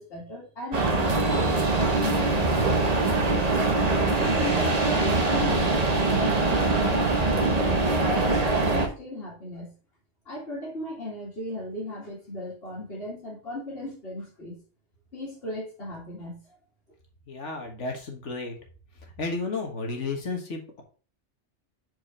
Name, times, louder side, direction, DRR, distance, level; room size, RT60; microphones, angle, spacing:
voice 1, 0.0-2.8 4.1-5.9 6.2-7.7 8.1-9.7 10.3-14.6 15.1-16.4, left 1 dB, 60° left, -6 dB, 2.2 m, -36 dB
sound 1, 0.7-8.9, right 3 dB, 35° right, 1.0 m, -23 dB
voice 2, 17.3-18.6 19.0-20.8, left 3 dB, 80° left, 2 dB, 1.8 m, -33 dB
4.9 x 4.6 x 4.9 m, 0.37 s
omnidirectional pair, 1.2 m